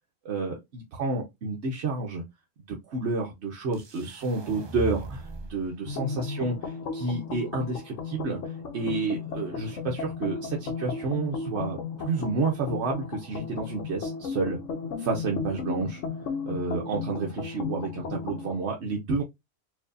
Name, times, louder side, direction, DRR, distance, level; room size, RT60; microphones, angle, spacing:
voice 1, 0.2-2.2 2.7-8.4 8.7-14.6 15.0-16.0 16.5-19.2, right 3 dB, 65° right, 0 dB, 1.0 m, -30 dB
sound 1, 3.7-5.7, right 1 dB, 40° right, 0.4 m, -38 dB
sound 2, 5.9-18.6, left 5 dB, 80° left, 1.1 m, -35 dB
4.5 x 2.6 x 2.5 m, 0.20 s
omnidirectional pair, 1.3 m